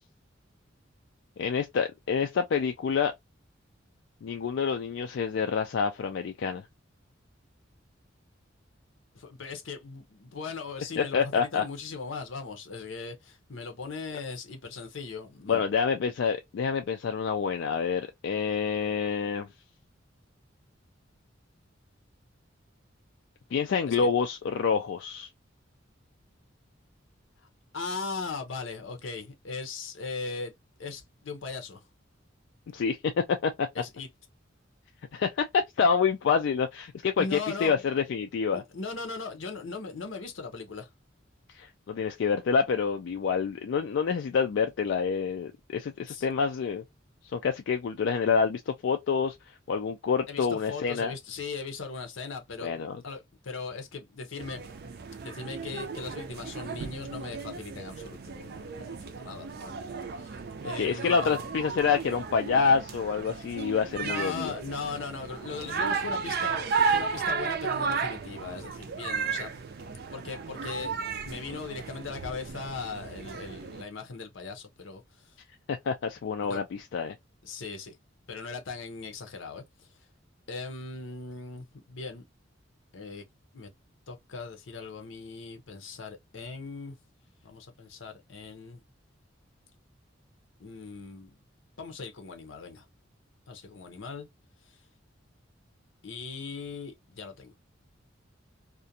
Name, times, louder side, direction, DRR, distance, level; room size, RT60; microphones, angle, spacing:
voice 1, 1.4-3.1 4.2-6.6 11.0-11.6 15.5-19.5 23.5-25.3 32.7-33.7 35.1-38.6 41.5-46.8 47.2-49.4 49.7-51.1 52.6-52.9 60.8-64.5 75.7-77.2, left 6 dB, 65° left, 0.3 m, -27 dB
voice 2, 9.1-15.7 23.9-24.1 27.7-30.5 30.8-31.9 33.7-34.1 37.2-37.7 38.5-40.9 46.1-46.3 50.3-52.7 53.0-54.6 55.2-59.8 60.2-61.4 64.0-69.5 70.1-70.9 71.2-75.4 76.4-76.6 77.4-78.0 78.3-79.9 80.5-82.2 82.9-83.2 83.5-83.7 84.1-87.0 87.4-88.8 90.6-91.4 91.8-92.8 93.5-94.3 94.7-94.8 96.0-97.5, left 4 dB, 80° left, 0.7 m, -39 dB
sound 1, 54.4-73.8, right 5 dB, 55° right, 0.4 m, -34 dB
2.4 x 2.2 x 2.6 m
head